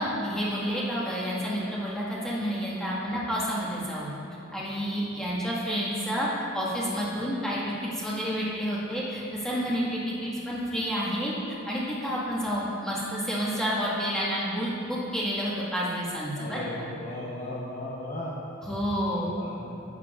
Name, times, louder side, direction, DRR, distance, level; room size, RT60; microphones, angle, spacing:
voice 1, 0.0-4.1 4.5-6.3 6.5-16.6 18.6-19.3, equal, 5° left, -8 dB, 1.8 m, -29 dB
voice 2, 16.4-18.3 19.1-19.7, left 1 dB, 35° left, -5 dB, 0.9 m, -37 dB
12.0 x 9.1 x 2.5 m, 2.9 s
head